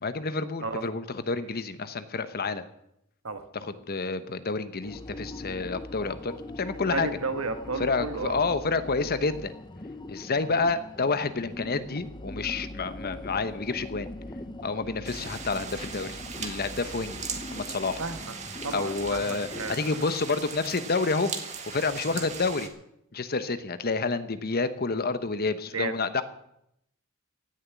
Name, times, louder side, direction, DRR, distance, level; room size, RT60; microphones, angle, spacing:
voice 1, 0.0-2.6 3.5-7.1 7.8-9.5 10.1-14.1 14.6-17.2 17.5-18.0 18.7-21.3 21.7-22.7 23.1-26.2, left 4 dB, 45° left, 12 dB, 1.0 m, -29 dB
sound 1, 4.8-19.8, left 1 dB, 20° left, 0.7 m, -41 dB
voice 2, 6.9-8.5 18.0-18.3 18.6-20.0 22.1-22.2 25.7-25.9, right 3 dB, 70° right, 8 dB, 1.5 m, -33 dB
sound 2, 15.0-22.7, right 5 dB, 35° right, 1.8 m, -39 dB
16.0 x 7.3 x 9.6 m, 0.79 s
head